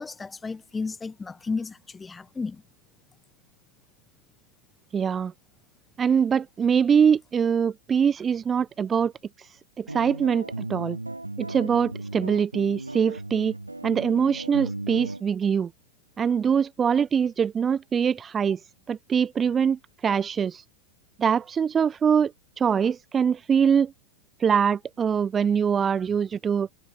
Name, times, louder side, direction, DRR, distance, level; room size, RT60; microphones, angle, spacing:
voice 1, 0.0-2.6, left 4 dB, 15° left, 2.6 m, -33 dB
voice 2, 4.9-5.3 6.0-9.1 9.4-11.0 11.4-13.5 13.8-15.7 16.2-18.6 18.9-20.6 21.2-22.3 22.6-23.9 24.4-26.7, right 7 dB, 20° right, 0.3 m, -23 dB
sound 1, 9.9-15.2, right 2 dB, 85° right, 6.1 m, -35 dB
figure-of-eight pair, 90°, 0 cm